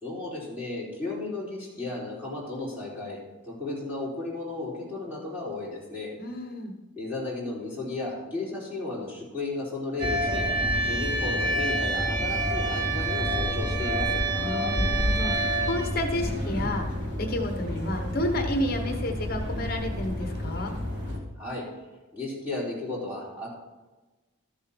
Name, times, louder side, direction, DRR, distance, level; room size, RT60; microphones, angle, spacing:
voice 1, 0.0-6.1 6.9-10.5 10.8-14.2 21.4-21.6 22.1-23.5, left 2 dB, 10° right, -7 dB, 4.1 m, -34 dB
voice 2, 6.2-6.7 14.3-16.8 17.2-20.7, left 1 dB, 45° left, 5 dB, 1.0 m, -31 dB
sound 1, 10.0-21.2, right 1 dB, 55° right, 2.0 m, -28 dB
13.0 x 7.3 x 4.4 m, 1.2 s
head